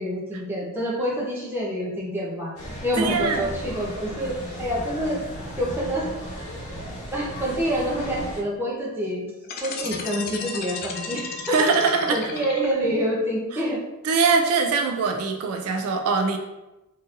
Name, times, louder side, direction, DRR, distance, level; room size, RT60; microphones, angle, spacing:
voice 1, 0.0-2.5 2.8-5.2 5.6-6.4 7.1-9.3 9.6-13.8, equal, 10° right, -5 dB, 0.7 m, -27 dB
sound 1, 2.6-8.4, equal, 75° left, 0.9 m, -35 dB
voice 2, 3.0-3.5 11.5-12.2 14.0-16.4, right 4 dB, 80° right, 4 dB, 0.4 m, -22 dB
sound 2, 9.4-13.0, left 5 dB, 45° left, 0.4 m, -34 dB
3.7 x 2.7 x 2.6 m, 0.99 s
head